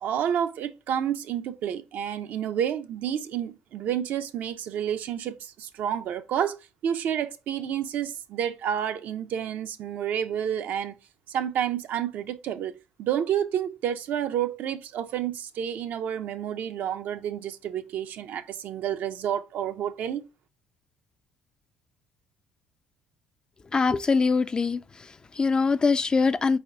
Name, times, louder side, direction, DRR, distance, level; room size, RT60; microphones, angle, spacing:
voice 1, 0.0-6.6 6.8-11.0 11.3-20.2, right 9 dB, 65° right, 0.6 m, -30 dB
voice 2, 23.7-26.6, left 4 dB, 25° left, 0.3 m, -23 dB
4.3 x 4.2 x 2.6 m
supercardioid pair, 80°, 3 cm